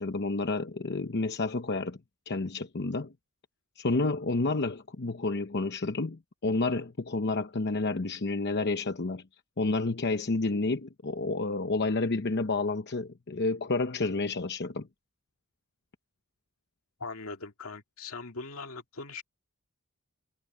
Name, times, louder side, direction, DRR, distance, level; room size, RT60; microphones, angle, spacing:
voice 1, 0.0-2.0 2.3-3.1 3.8-9.2 9.6-14.9, left 3 dB, 55° left, 0.9 m, -30 dB
voice 2, 17.0-19.2, left 3 dB, 75° left, 2.3 m, -40 dB
head